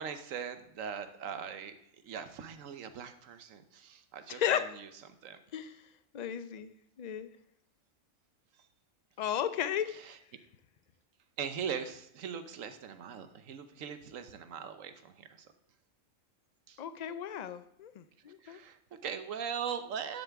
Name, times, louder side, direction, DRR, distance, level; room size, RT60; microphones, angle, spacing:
voice 1, 0.0-1.8 2.0-4.9 5.2-5.4 10.0-10.2 11.4-15.5 16.7-16.8 18.4-20.2, right 7 dB, 80° right, 9 dB, 1.2 m, -40 dB
voice 2, 4.3-4.6 5.5-5.8 6.1-6.7 7.0-7.3 9.2-9.9 16.8-18.6, left 9 dB, 70° left, 12 dB, 0.4 m, -34 dB
11.5 x 7.0 x 3.5 m, 0.73 s
omnidirectional pair, 1.3 m